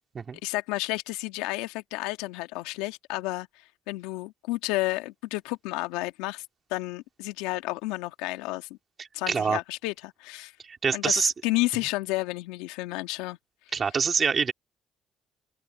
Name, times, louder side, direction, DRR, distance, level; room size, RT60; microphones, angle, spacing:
voice 1, 0.4-3.5 3.9-6.4 6.7-8.7 9.1-10.5 10.9-13.4, left 20 dB, 85° left, 1.9 m, -31 dB
voice 2, 9.0-9.6 10.7-11.3 13.7-14.5, right 6 dB, 40° right, 3.3 m, -25 dB
open air
supercardioid pair, 70°, 0 cm